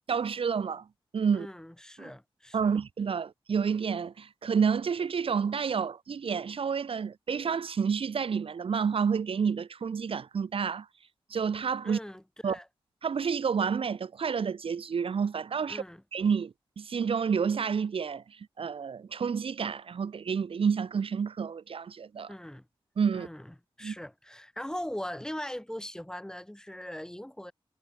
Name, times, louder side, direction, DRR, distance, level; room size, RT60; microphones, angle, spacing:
voice 1, 0.1-0.8 1.1-1.5 2.0-2.1 2.5-10.9 11.3-12.0 12.4-12.6 13.0-15.8 16.1-22.3 23.0-23.3 23.8-23.9, right 6 dB, 70° right, 2.8 m, -29 dB
voice 2, 1.3-2.8 11.8-12.7 15.7-16.0 22.3-22.7 23.1-27.5, left 1 dB, 5° left, 6.9 m, -40 dB
wide cardioid pair, 95°, 10 cm